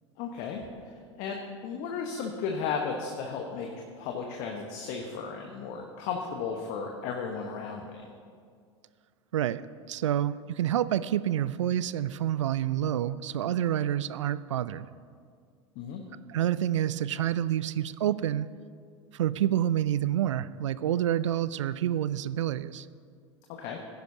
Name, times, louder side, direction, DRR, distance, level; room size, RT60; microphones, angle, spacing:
voice 1, 0.2-0.6 1.2-8.1 15.7-16.0 23.5-23.8, left 5 dB, 50° left, 2 dB, 1.1 m, -34 dB
voice 2, 9.3-14.9 16.3-18.5 19.1-22.9, right 11 dB, 75° right, 16 dB, 0.4 m, -28 dB
16.0 x 10.5 x 2.8 m, 2.2 s
hypercardioid pair, 85°, 16 cm